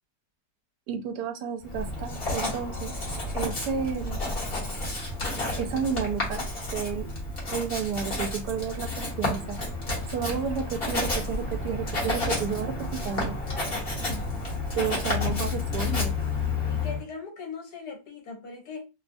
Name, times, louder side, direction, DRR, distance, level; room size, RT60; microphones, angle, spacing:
voice 1, 0.9-2.9 3.3-4.2 5.6-6.4 6.7-7.1 7.5-9.6 10.1-13.3 14.8-16.1, right 7 dB, 80° right, 1.2 m, -31 dB
Writing, 1.6-17.0, left 2 dB, 40° left, 1.2 m, -30 dB
voice 2, 13.4-14.3 16.6-18.9, left 5 dB, 70° left, 1.4 m, -40 dB
3.1 x 2.3 x 2.5 m
omnidirectional pair, 1.8 m